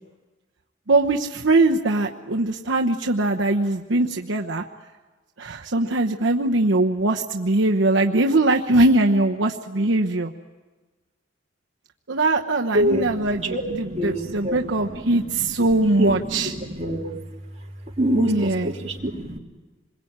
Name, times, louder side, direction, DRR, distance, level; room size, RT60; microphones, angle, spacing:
voice 1, 0.9-4.6 5.4-10.3 12.1-16.5 18.3-18.7, right 2 dB, 70° right, 2 dB, 1.0 m, -21 dB
voice 2, 12.7-17.2 18.0-19.4, equal, 35° right, -1 dB, 3.0 m, -26 dB
26.5 x 22.0 x 8.8 m, 1.2 s
head